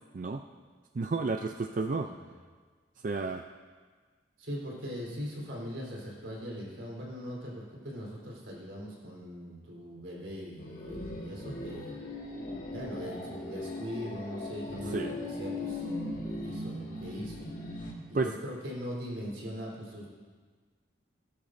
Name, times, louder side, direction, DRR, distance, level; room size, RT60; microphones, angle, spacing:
voice 1, 0.9-2.1 3.0-3.4 14.9-15.1 18.1-18.3, right 3 dB, 40° right, 5 dB, 0.4 m, -31 dB
voice 2, 2.0-2.3 4.4-12.0 12.7-15.9 16.2-20.1, equal, 75° right, -3 dB, 3.7 m, -41 dB
sound 1, 10.6-17.9, left 2 dB, 45° left, 1.7 m, -39 dB
17.5 x 12.0 x 2.6 m, 1.5 s
head